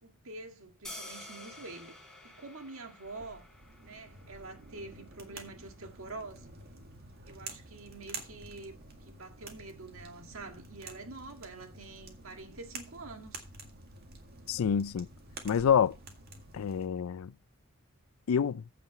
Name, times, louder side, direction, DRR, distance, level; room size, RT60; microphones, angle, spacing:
voice 1, 0.0-3.5 3.8-6.6 7.3-8.8 9.1-13.4, right 3 dB, 75° right, 1.9 m, -46 dB
sound 1, 0.8-6.9, left 1 dB, 5° left, 3.5 m, -51 dB
sound 2, 3.1-16.9, right 3 dB, 50° right, 1.9 m, -49 dB
voice 2, 14.5-15.1 15.4-16.0 16.5-17.3 18.3-18.6, left 7 dB, 80° left, 0.4 m, -27 dB
15.0 x 5.1 x 4.5 m
head